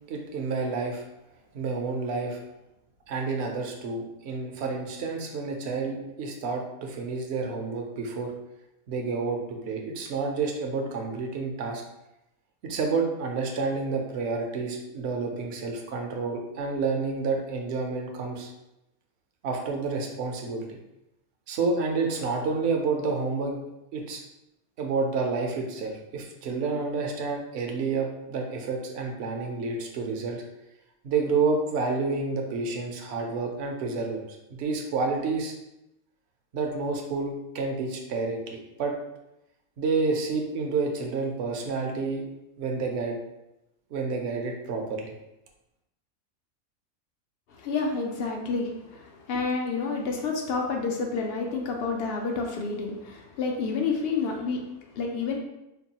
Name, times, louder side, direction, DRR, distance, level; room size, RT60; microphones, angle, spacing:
voice 1, 0.1-1.1 1.5-2.4 3.1-8.3 8.9-11.8 12.6-18.5 19.4-20.8 21.5-23.6 23.9-24.2 24.8-30.4 31.0-35.5 36.5-38.9 39.8-42.2 42.6-43.2 43.9-45.1, right 4 dB, 60° right, 1 dB, 0.8 m, -29 dB
voice 2, 47.5-55.4, left 4 dB, 70° left, 1 dB, 0.5 m, -29 dB
4.4 x 2.3 x 2.8 m, 0.91 s
omnidirectional pair, 1.5 m